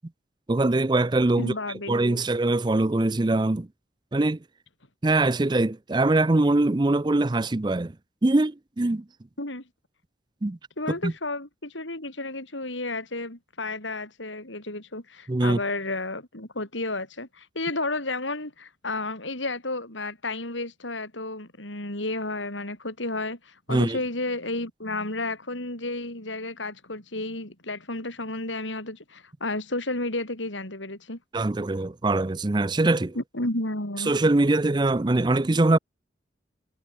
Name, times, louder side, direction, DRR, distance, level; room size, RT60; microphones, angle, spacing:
voice 1, 0.5-1.5 1.9-3.7 4.1-4.4 5.0-7.9 8.2-9.0 10.4-10.6 11.0-11.1 15.3-15.6 23.7-24.0 31.3-33.1 34.1-35.8, right 2 dB, 25° right, 0.5 m, -22 dB
voice 2, 1.4-2.2 9.4-9.6 10.8-31.2 33.2-34.1, left 2 dB, 85° left, 7.0 m, -32 dB
head